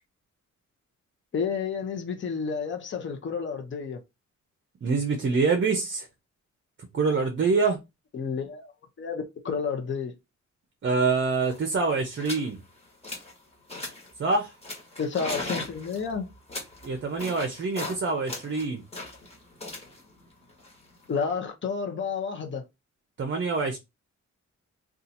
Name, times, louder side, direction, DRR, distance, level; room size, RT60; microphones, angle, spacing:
voice 1, 1.3-4.0 8.1-8.7 9.0-10.1 15.0-16.3 21.1-22.6, left 5 dB, 40° left, 0.7 m, -30 dB
voice 2, 4.8-6.1 6.9-7.8 10.8-12.6 14.2-14.5 16.8-18.8 23.2-23.8, right 4 dB, 40° right, 0.6 m, -25 dB
sound 1, 11.1-11.2 11.4-11.7 12.2-12.5 12.8-13.4 13.7-14.1 14.6-18.0 18.3-21.3, left 2 dB, 20° left, 1.3 m, -38 dB
2.7 x 2.4 x 4.0 m
wide cardioid pair, 145°, 30 cm